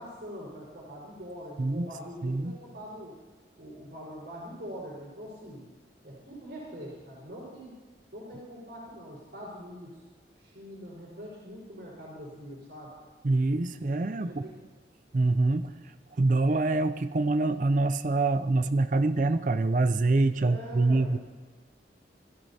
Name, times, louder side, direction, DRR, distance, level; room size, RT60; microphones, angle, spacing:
voice 1, 0.0-3.1 3.6-5.6 6.0-7.7 8.1-10.0 10.3-12.9 14.2-14.5 20.4-21.2, equal, 65° right, -8 dB, 4.4 m, -43 dB
voice 2, 1.6-1.9 2.2-2.6 13.2-14.4 15.1-15.7 16.1-21.2, right 2 dB, 45° right, 11 dB, 0.5 m, -25 dB
16.0 x 13.5 x 2.8 m, 1.3 s
head